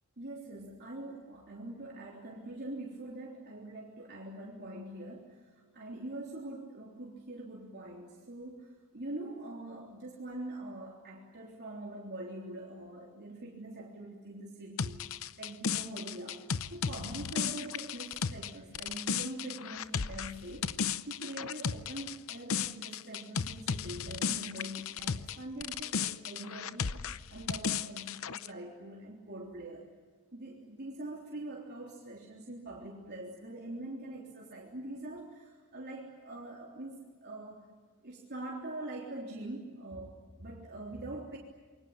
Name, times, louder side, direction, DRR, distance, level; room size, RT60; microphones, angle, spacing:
voice 1, 0.2-15.1 15.4-26.9 27.3-29.9 30.3-37.7 38.0-41.4, right 1 dB, 50° right, -3 dB, 3.6 m, -44 dB
sound 1, 14.8-25.4 25.6-28.5, left 6 dB, 65° left, 0.8 m, -35 dB
27.5 x 23.5 x 8.8 m, 1.4 s
head